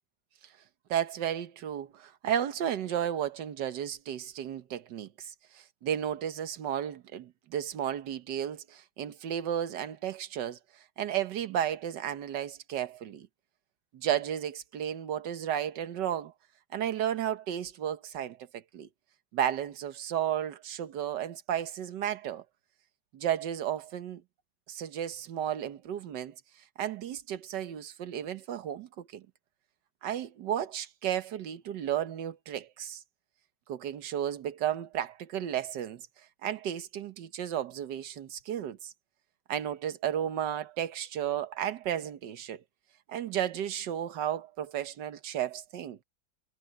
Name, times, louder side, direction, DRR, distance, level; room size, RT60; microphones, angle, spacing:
voice 1, 0.9-10.6 11.0-13.3 13.9-16.3 16.7-18.9 19.3-22.4 23.1-24.2 24.7-26.3 26.8-29.2 30.0-33.0 33.7-36.1 36.4-38.9 39.5-42.6 43.1-46.0, right 10 dB, 65° right, 1.7 m, -33 dB
omnidirectional pair, 2.1 m